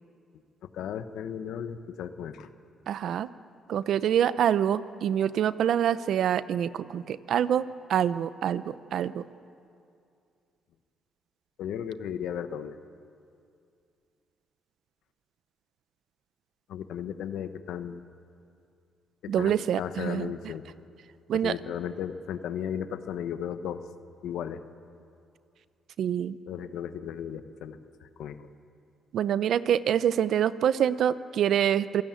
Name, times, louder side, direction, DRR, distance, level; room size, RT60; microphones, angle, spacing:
voice 1, 0.6-2.5 11.6-12.8 16.7-18.0 19.2-20.6 21.3-23.8 24.2-24.6 26.5-28.5, left 9 dB, 80° left, 10 dB, 1.2 m, -35 dB
voice 2, 2.9-3.3 3.7-7.6 7.9-9.2 19.3-20.3 21.3-21.5 26.0-26.4 29.1-32.0, right 9 dB, 70° right, 15 dB, 0.7 m, -26 dB
27.0 x 16.5 x 9.2 m, 2.5 s
cardioid pair, 90°, 0 cm